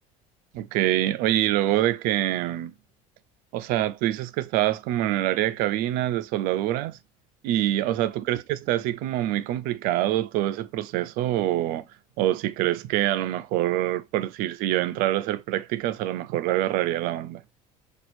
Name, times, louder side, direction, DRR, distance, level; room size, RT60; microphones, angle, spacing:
voice 1, 0.5-2.7 3.5-7.0 7.4-11.8 12.2-17.4, right 14 dB, 70° right, 0.4 m, -25 dB
4.3 x 2.4 x 2.5 m
supercardioid pair, 115°, 15 cm